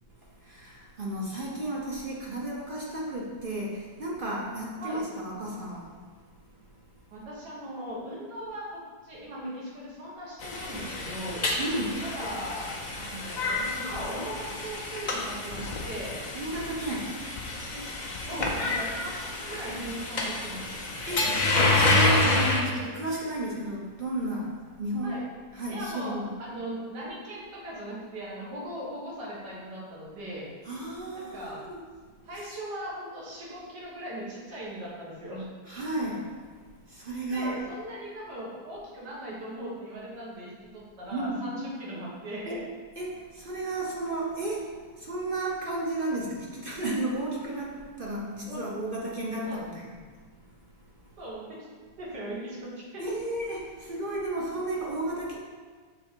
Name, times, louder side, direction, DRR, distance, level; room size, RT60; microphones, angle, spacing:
voice 1, 0.5-5.9 11.6-12.0 16.3-17.1 18.3-18.4 21.1-24.5 24.8-25.2 25.5-26.3 30.6-31.8 32.3-32.5 35.7-36.3 36.9-37.6 41.1-41.4 42.4-42.6 43.0-49.9 53.0-55.4, right 1 dB, 40° right, -4 dB, 0.8 m, -33 dB
voice 2, 7.1-11.5 12.0-16.2 17.7-19.1 19.4-20.8 25.0-25.3 25.7-30.5 31.1-31.7 32.3-35.5 37.3-42.6 48.4-48.6 49.4-49.6 51.2-51.7 52.0-53.0, right 1 dB, 75° right, -5 dB, 2.1 m, -39 dB
sound 1, 10.4-22.6, left 2 dB, 50° left, 0.5 m, -28 dB
6.6 x 3.7 x 4.5 m, 1.5 s
omnidirectional pair, 1.8 m